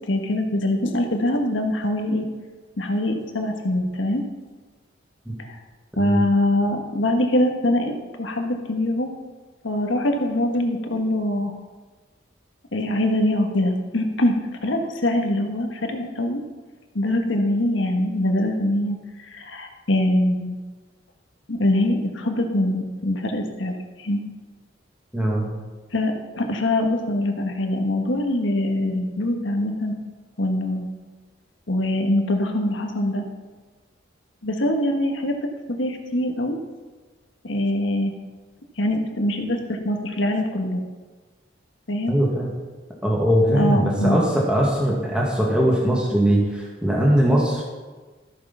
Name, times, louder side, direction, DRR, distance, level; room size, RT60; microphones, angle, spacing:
voice 1, 0.1-2.3 2.8-4.2 5.4-5.5 6.0-9.1 9.6-11.6 12.7-16.4 16.9-20.5 21.5-23.7 24.0-24.2 25.9-29.9 30.4-30.9 31.7-33.2 34.4-36.6 37.4-38.1 38.8-40.8 41.9-42.1 43.5-44.2, left 1 dB, 80° left, 4 dB, 1.5 m, -23 dB
voice 2, 25.1-25.5 42.1-42.5 43.0-47.6, equal, 5° right, -3 dB, 2.0 m, -20 dB
14.0 x 6.7 x 5.7 m, 1.3 s
head